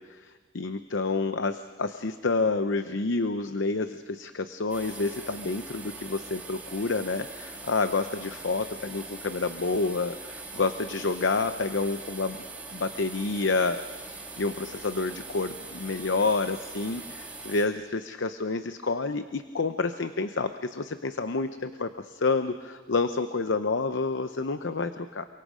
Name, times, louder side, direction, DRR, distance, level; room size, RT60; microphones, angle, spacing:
voice 1, 0.1-12.4 12.7-25.3, left 3 dB, 75° left, 9 dB, 0.8 m, -29 dB
sound 1, 4.7-17.6, right 3 dB, 10° right, 2.4 m, -42 dB
28.5 x 24.0 x 5.1 m, 1.4 s
head